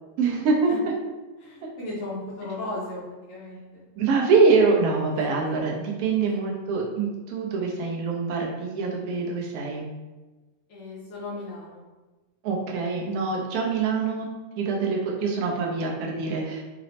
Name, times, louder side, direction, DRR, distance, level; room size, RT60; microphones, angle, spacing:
voice 1, 0.2-0.7 4.0-9.9 12.4-14.3 14.6-16.6, right 4 dB, 65° right, -1 dB, 1.0 m, -24 dB
voice 2, 1.4-3.8 6.3-6.4 10.7-11.8, left 2 dB, 60° left, -7 dB, 0.8 m, -36 dB
4.0 x 2.0 x 2.7 m, 1.2 s
omnidirectional pair, 1.9 m